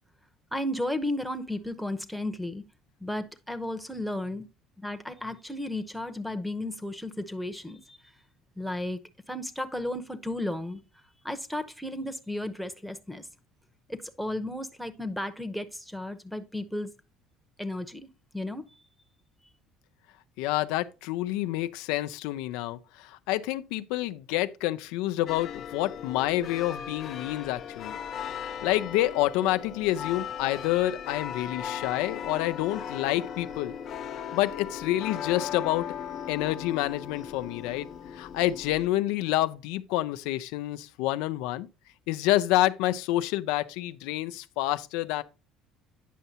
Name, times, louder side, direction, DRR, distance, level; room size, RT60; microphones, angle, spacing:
voice 1, 0.5-2.6 3.0-4.4 4.8-8.0 8.6-9.0 9.3-10.8 11.2-13.2 13.9-16.9 17.6-18.1 18.3-18.6, left 1 dB, ahead, 0.8 m, -34 dB
voice 2, 20.4-28.0 28.4-33.8 34.1-35.9 36.3-37.9 38.1-41.7 42.1-45.2, left 15 dB, 85° left, 0.4 m, -28 dB
sound 1, 25.3-38.9, left 8 dB, 50° left, 0.9 m, -38 dB
9.2 x 5.5 x 2.8 m
supercardioid pair, 100°, 0 cm